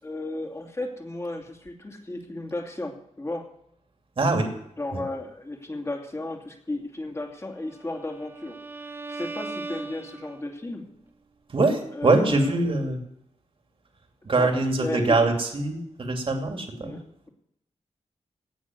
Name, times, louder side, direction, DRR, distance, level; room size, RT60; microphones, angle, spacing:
voice 1, 0.0-3.5 4.8-8.6 9.1-10.9 11.9-12.6 14.4-15.3 16.8-17.3, left 2 dB, 25° left, 3 dB, 2.6 m, -34 dB
voice 2, 4.2-4.5 11.5-13.0 14.2-17.0, right 3 dB, 50° right, 4 dB, 2.6 m, -23 dB
Bowed string instrument, 7.6-10.7, right 3 dB, 20° right, 1.2 m, -39 dB
17.5 x 6.2 x 9.7 m, 0.74 s
wide cardioid pair, 110°, 12 cm